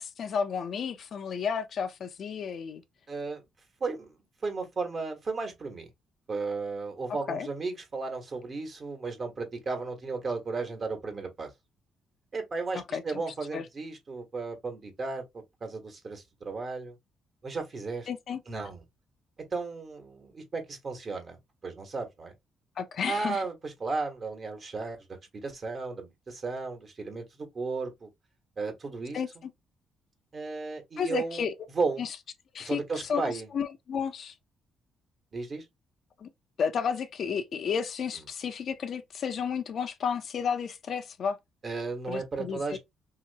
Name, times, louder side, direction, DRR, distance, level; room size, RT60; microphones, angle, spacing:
voice 1, 0.0-2.8 7.3-7.5 12.7-13.2 13.5-13.7 18.1-18.4 22.8-23.4 29.1-29.5 31.0-31.6 32.0-32.1 32.5-34.3 36.2-36.3 36.6-41.4 42.1-42.8, left 6 dB, 60° left, 0.5 m, -32 dB
voice 2, 3.1-3.4 3.8-4.2 4.4-5.9 6.3-11.5 12.3-16.9 17.4-18.1 18.5-18.8 19.5-21.4 21.6-22.3 23.0-25.0 25.3-28.1 28.6-29.2 30.3-31.5 31.7-32.0 32.6-33.5 35.3-35.6 38.2-38.3 41.6-42.8, right 4 dB, 40° right, 1.3 m, -34 dB
3.1 x 2.8 x 2.8 m
cardioid pair, 90°, 0 cm